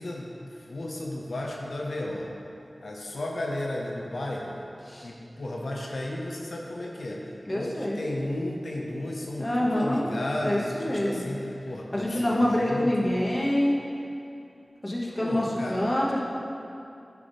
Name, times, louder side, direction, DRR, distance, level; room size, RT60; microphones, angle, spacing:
voice 1, 0.0-2.3 2.8-4.6 5.0-7.2 7.5-13.1 15.2-15.8, left 1 dB, 85° left, -2 dB, 0.7 m, -34 dB
voice 2, 7.5-8.0 9.4-10.1 10.4-11.4 11.9-13.7 14.8-16.2, left 1 dB, 30° left, -4 dB, 1.1 m, -26 dB
10.0 x 3.6 x 5.0 m, 2.7 s
wide cardioid pair, 75°, 0 cm